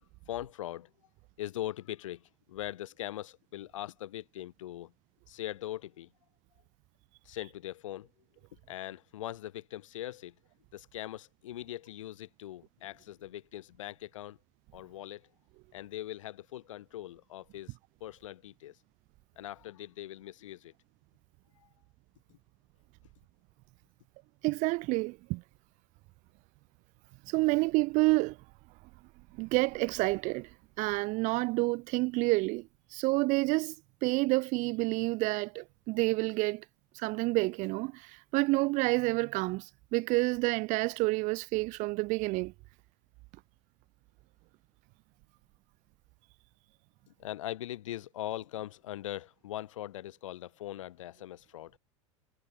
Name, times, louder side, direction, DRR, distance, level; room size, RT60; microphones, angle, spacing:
voice 1, 0.3-0.9 1.4-4.9 5.3-6.1 7.2-8.1 8.5-10.4 10.7-14.4 14.7-15.3 15.7-18.8 19.4-20.7 21.6-21.7 22.3-22.4 47.1-51.8, left 13 dB, 80° left, 1.2 m, -41 dB
voice 2, 24.4-25.4 27.2-28.4 29.3-30.5 30.8-33.7 34.0-36.6 37.0-42.5, right 24 dB, 50° right, 0.6 m, -29 dB
hypercardioid pair, 90°, 16 cm